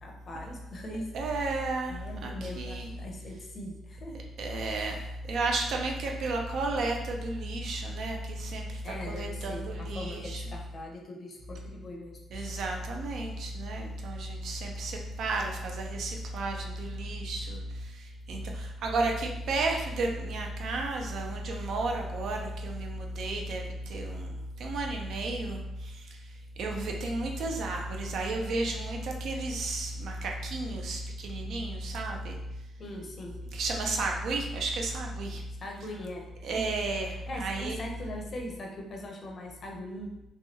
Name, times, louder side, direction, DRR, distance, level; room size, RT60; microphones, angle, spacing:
voice 1, 0.0-1.0 1.9-4.2 4.7-4.9 8.8-12.6 32.8-33.4 35.6-36.6 37.3-40.2, left 1 dB, 45° left, 1 dB, 0.7 m, -41 dB
voice 2, 1.1-2.9 4.4-10.4 12.3-32.5 33.5-35.5 36.4-37.8, right 2 dB, 70° right, 1 dB, 0.5 m, -33 dB
3.2 x 2.2 x 2.8 m, 0.88 s
cardioid pair, 90°, 0 cm